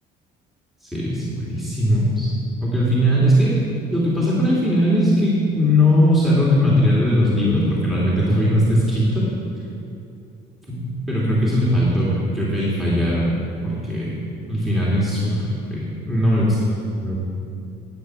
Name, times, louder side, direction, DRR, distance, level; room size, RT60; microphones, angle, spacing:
voice 1, 0.8-2.3 2.6-3.6 3.9-9.3 10.7-13.2 13.6-14.2 14.5-16.6 17.0-17.2, equal, ahead, -7 dB, 3.0 m, -19 dB
12.0 x 8.4 x 6.4 m, 2.6 s
cardioid pair, 110°, 17 cm